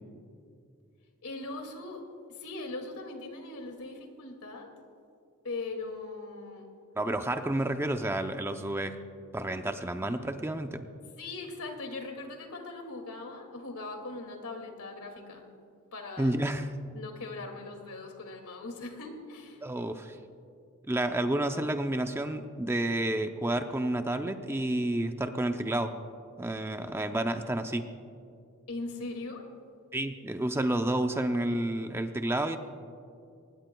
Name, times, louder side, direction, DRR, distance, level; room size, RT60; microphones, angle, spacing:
voice 1, 1.2-2.0 2.3-4.7 5.4-6.7 11.2-15.5 15.9-16.4 16.9-19.6 28.7-29.4, left 3 dB, 85° left, 3 dB, 2.3 m, -40 dB
voice 2, 7.0-9.0 9.3-10.9 16.2-16.7 19.6-20.2 20.9-26.0 26.4-27.8 29.9-32.6, right 1 dB, 10° right, 7 dB, 0.5 m, -30 dB
24.0 x 19.5 x 2.3 m, 2.4 s
head